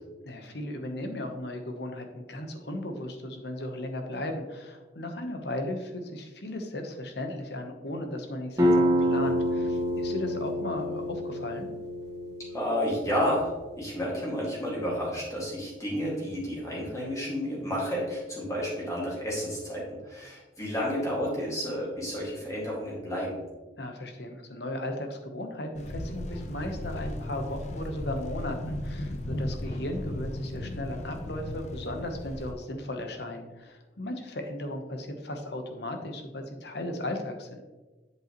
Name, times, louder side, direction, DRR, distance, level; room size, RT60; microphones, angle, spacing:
voice 1, 0.2-11.7 23.8-37.6, left 1 dB, 60° left, 5 dB, 1.0 m, -36 dB
sound 1, 8.6-14.0, equal, 20° right, 1.4 m, -28 dB
voice 2, 12.5-23.4, equal, 15° left, -5 dB, 2.1 m, -31 dB
sound 2, 25.8-32.5, left 1 dB, 35° left, 0.7 m, -36 dB
7.9 x 7.8 x 3.1 m, 1.2 s
head